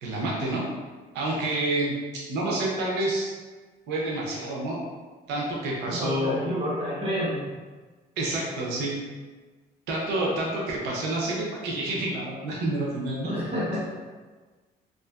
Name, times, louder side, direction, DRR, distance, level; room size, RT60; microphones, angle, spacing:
voice 1, 0.0-0.7 1.1-3.3 3.9-4.8 5.3-6.4 8.2-9.0 9.9-13.3, right 1 dB, 90° right, -4 dB, 0.5 m, -28 dB
voice 2, 5.9-7.5 13.2-13.8, equal, 35° right, -6 dB, 1.0 m, -29 dB
2.7 x 2.4 x 2.2 m, 1.4 s
cardioid pair, 110°, 17 cm